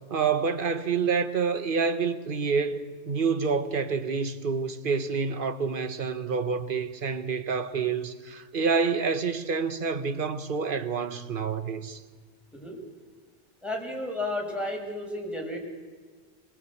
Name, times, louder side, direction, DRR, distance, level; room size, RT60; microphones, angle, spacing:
voice 1, 0.1-12.0, right 5 dB, 50° right, 1.4 m, -28 dB
voice 2, 13.6-15.6, left 1 dB, ahead, 6.1 m, -32 dB
24.5 x 22.5 x 8.5 m
omnidirectional pair, 1.2 m